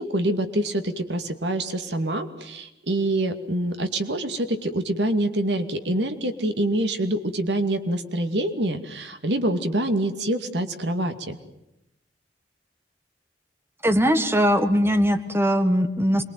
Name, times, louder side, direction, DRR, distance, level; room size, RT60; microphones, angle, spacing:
voice 1, 0.0-11.4, right 1 dB, 80° right, 8 dB, 2.5 m, -26 dB
voice 2, 13.8-16.2, equal, 15° right, 9 dB, 1.7 m, -20 dB
27.0 x 22.5 x 9.3 m, 0.87 s
head